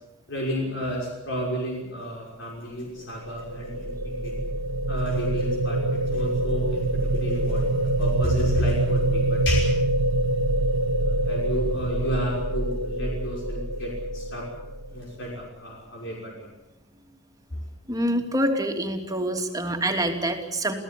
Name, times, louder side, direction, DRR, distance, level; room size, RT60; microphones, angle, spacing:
voice 1, 0.3-4.3 4.9-9.7 11.0-14.4 14.9-16.5 17.5-17.6, equal, 60° left, -1 dB, 6.0 m, -32 dB
sound 1, 3.0-15.2, right 1 dB, 85° right, 1.9 m, -25 dB
voice 2, 17.9-20.7, right 1 dB, 15° right, 4 dB, 2.8 m, -26 dB
28.0 x 16.5 x 8.4 m, 0.97 s
head